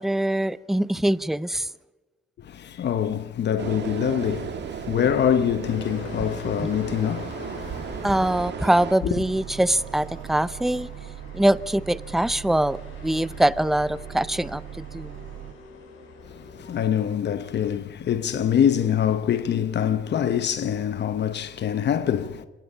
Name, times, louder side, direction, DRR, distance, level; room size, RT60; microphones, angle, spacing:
voice 1, 0.0-1.7 6.6-6.7 8.0-10.9 11.3-15.1, right 1 dB, ahead, 0.6 m, -23 dB
voice 2, 2.4-8.1 16.2-22.5, left 9 dB, 60° left, 1.0 m, -25 dB
sound 1, 3.6-9.0, right 7 dB, 60° right, 1.7 m, -35 dB
sound 2, 5.6-16.7, left 4 dB, 85° left, 6.1 m, -43 dB
sound 3, 9.0-15.5, right 11 dB, 85° right, 1.8 m, -40 dB
26.0 x 19.5 x 5.6 m
cardioid pair, 90°, 20 cm